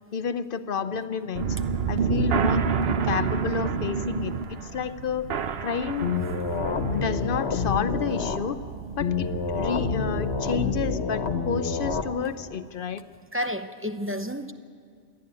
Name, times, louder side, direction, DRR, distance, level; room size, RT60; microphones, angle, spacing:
voice 1, 0.1-1.6 1.9-2.6 3.0-5.3 5.6-6.2 6.9-8.6 8.9-13.0, left 6 dB, 60° left, 13 dB, 0.8 m, -30 dB
sound 1, 1.3-10.9, right 6 dB, 70° right, 1.0 m, -29 dB
sound 2, 6.0-8.4 9.0-12.0, left 5 dB, 90° left, 1.5 m, -28 dB
voice 2, 13.3-14.5, equal, 15° right, 7 dB, 0.7 m, -30 dB
27.0 x 10.5 x 9.8 m, 2.1 s
omnidirectional pair, 1.1 m